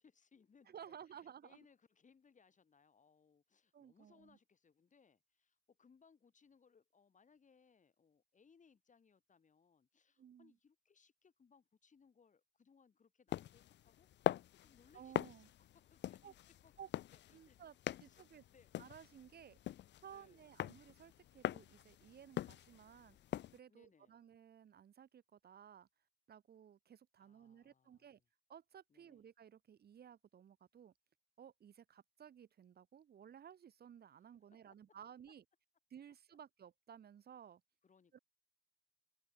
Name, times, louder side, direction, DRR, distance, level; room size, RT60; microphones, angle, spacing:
voice 1, 0.0-17.6 17.9-18.7 20.1-20.5 23.7-24.2 27.2-28.3 28.9-29.2 34.2-34.6 34.9-35.0 37.8-38.2, left 5 dB, 40° left, 4.2 m, -70 dB
voice 2, 0.7-1.6 3.7-4.4 10.2-10.5 14.9-15.5 16.2-16.3 16.8-16.9 17.3-17.7 18.0-18.4 18.8-19.6 20.0-23.2 23.5-25.9 26.3-28.2 28.5-30.9 31.4-35.4 35.9-37.6 38.1-38.2, right 8 dB, 50° right, 1.4 m, -57 dB
sound 1, 13.3-23.6, left 12 dB, 65° left, 0.6 m, -43 dB
cardioid pair, 90°, 20 cm